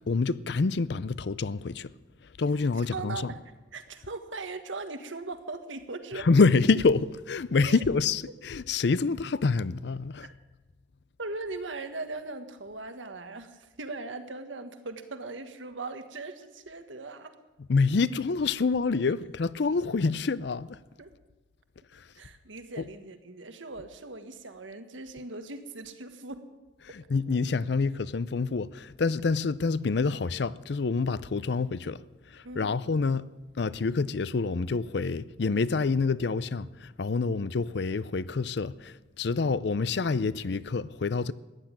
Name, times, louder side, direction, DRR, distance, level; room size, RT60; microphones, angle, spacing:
voice 1, 0.1-1.9 2.4-3.3 6.1-10.3 17.7-20.8 21.9-22.1 26.8-32.0 32.3-33.3 33.6-41.3, left 4 dB, 60° left, 0.5 m, -27 dB
voice 2, 2.7-3.4 3.7-6.3 7.6-7.8 11.2-17.3 21.0-21.1 22.2-26.4 32.4-32.8, right 3 dB, 80° right, 1.5 m, -39 dB
14.5 x 10.5 x 8.9 m
head